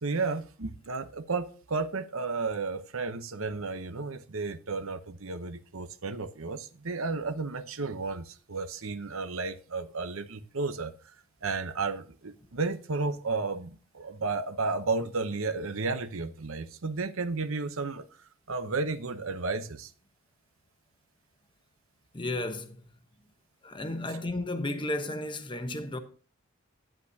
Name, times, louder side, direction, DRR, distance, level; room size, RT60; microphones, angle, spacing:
voice 1, 0.0-10.9 11.4-18.1 18.5-19.9, right 3 dB, 65° right, 0.8 m, -33 dB
voice 2, 22.1-22.8 23.6-26.0, left 2 dB, 20° left, 0.9 m, -33 dB
11.0 x 9.9 x 2.8 m
head